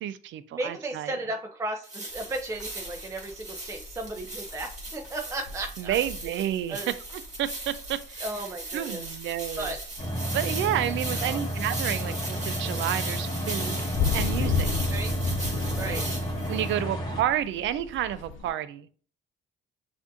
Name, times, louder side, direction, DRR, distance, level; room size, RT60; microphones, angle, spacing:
voice 1, 0.0-1.1 5.8-6.8 7.1-8.2 8.7-9.7 10.3-13.8 14.1-14.7 15.8-18.9, right 11 dB, 75° right, 0.4 m, -30 dB
voice 2, 0.5-6.0 6.7-6.9 8.2-9.0 9.6-9.8 11.2-11.5 14.9-15.1 15.8-16.2, right 2 dB, 15° right, 0.5 m, -35 dB
sound 1, 1.8-16.7, right 2 dB, 35° right, 1.8 m, -38 dB
sound 2, 2.1-18.5, left 6 dB, 75° left, 0.9 m, -35 dB
sound 3, 10.0-17.2, equal, 20° left, 1.3 m, -31 dB
6.0 x 2.6 x 2.6 m
cardioid pair, 90°, 20 cm